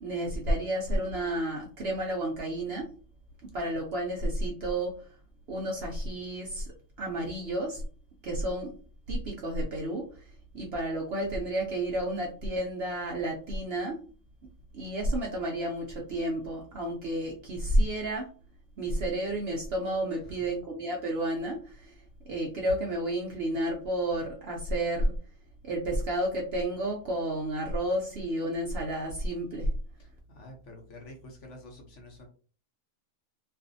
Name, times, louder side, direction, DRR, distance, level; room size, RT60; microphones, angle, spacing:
voice 1, 0.0-2.9 3.5-5.1 5.5-6.7 7.0-7.8 8.2-8.7 9.1-10.3 10.5-14.0 14.7-18.3 18.8-21.9 22.3-25.1 25.6-29.7, right 1 dB, 80° right, -1 dB, 0.5 m, -31 dB
voice 2, 30.0-32.3, left 1 dB, 60° left, 1 dB, 0.8 m, -48 dB
2.6 x 2.4 x 2.5 m, 0.40 s
omnidirectional pair, 1.7 m